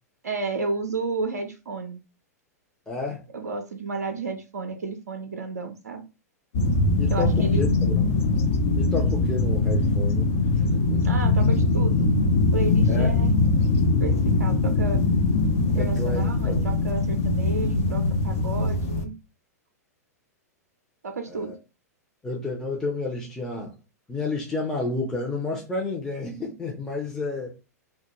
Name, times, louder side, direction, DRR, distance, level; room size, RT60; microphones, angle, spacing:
voice 1, 0.2-2.0 3.3-6.0 7.1-7.6 11.0-12.1 12.5-13.3 14.0-15.0 15.6-19.1 21.0-21.5, right 3 dB, 70° right, 0.4 m, -32 dB
voice 2, 2.9-3.3 7.0-8.3 8.8-10.3 10.9-11.0 12.9-13.1 15.7-16.6 21.3-21.5 22.2-23.8 24.1-27.5, left 3 dB, 5° left, 0.5 m, -31 dB
sound 1, 6.5-19.1, left 3 dB, 50° left, 0.5 m, -22 dB
2.2 x 2.1 x 2.8 m
figure-of-eight pair, 100°, 9 cm